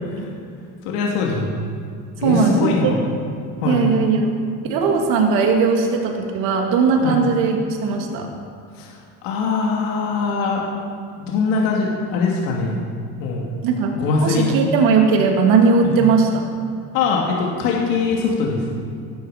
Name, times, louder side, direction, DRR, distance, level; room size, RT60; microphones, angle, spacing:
voice 1, 0.8-1.5 2.2-3.0 3.6-3.8 7.0-7.2 8.7-9.0 9.2-10.6 11.2-12.8 13.2-13.5 13.9-14.5 15.8-15.9 16.9-18.6, left 4 dB, 85° left, -2 dB, 2.7 m, -22 dB
voice 2, 2.2-3.0 3.6-4.3 4.7-8.3 13.6-16.4, right 4 dB, 70° right, 2 dB, 2.6 m, -18 dB
17.0 x 14.5 x 5.2 m, 2.3 s
cardioid pair, 165°, 34 cm